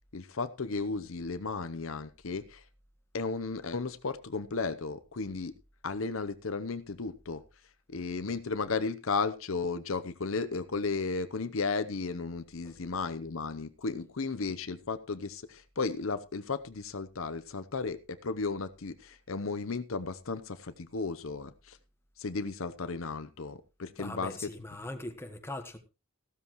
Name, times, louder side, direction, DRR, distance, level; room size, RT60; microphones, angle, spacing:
voice 1, 0.1-2.6 3.1-5.5 5.8-7.4 7.9-21.8 22.2-24.3, left 4 dB, 75° left, 0.8 m, -34 dB
voice 2, 24.0-25.8, left 1 dB, 10° left, 1.4 m, -41 dB
15.5 x 12.5 x 3.1 m
head